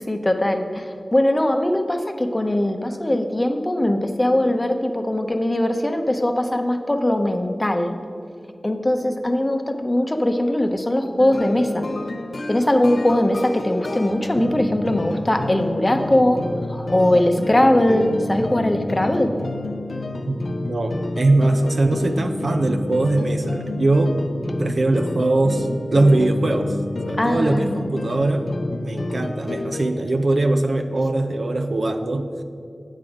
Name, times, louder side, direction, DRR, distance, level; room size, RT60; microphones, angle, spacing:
voice 1, 0.0-8.0 8.6-11.9 12.5-19.3 27.2-27.9, left 1 dB, 30° left, 6 dB, 0.7 m, -20 dB
sound 1, 11.2-29.9, left 2 dB, 80° left, 0.6 m, -29 dB
voice 2, 20.7-24.2 24.6-26.7 27.1-28.5 28.8-32.3, right 2 dB, 70° right, 5 dB, 0.6 m, -21 dB
8.3 x 6.1 x 5.0 m, 2.4 s
wide cardioid pair, 50°, 0 cm